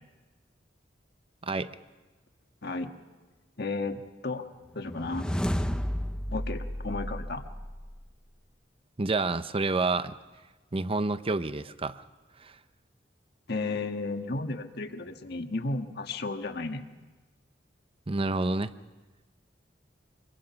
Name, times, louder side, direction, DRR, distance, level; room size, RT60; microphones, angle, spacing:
voice 1, 2.6-2.9 3.6-4.5 4.7-5.3 6.3-7.4 13.5-16.8, left 3 dB, 60° left, 6 dB, 1.5 m, -33 dB
sound 1, 4.8-8.1, equal, 5° left, 0.7 m, -32 dB
voice 2, 9.0-10.1 10.7-12.0 12.4-12.6 18.1-18.7, right 3 dB, 30° right, 13 dB, 0.7 m, -28 dB
25.0 x 23.0 x 5.8 m, 1.3 s
head